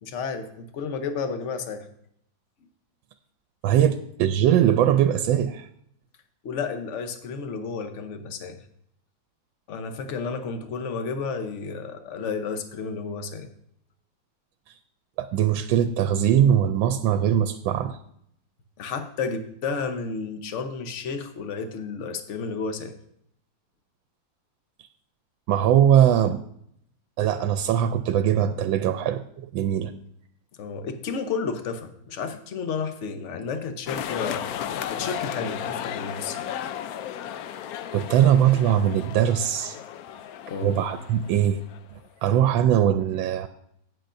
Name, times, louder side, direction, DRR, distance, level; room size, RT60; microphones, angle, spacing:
voice 1, 0.0-1.9 6.4-8.6 9.7-13.5 18.8-22.9 30.6-36.4 40.5-40.7, left 5 dB, 50° left, 7 dB, 1.0 m, -32 dB
voice 2, 3.6-5.7 14.7-14.8 15.2-18.0 25.5-26.4 27.2-29.9 37.9-39.8 40.6-41.6 42.2-43.5, right 10 dB, 85° right, 9 dB, 1.3 m, -21 dB
sound 1, 33.9-42.0, left 10 dB, 75° left, 0.8 m, -34 dB
17.0 x 6.9 x 2.6 m, 0.69 s
omnidirectional pair, 2.1 m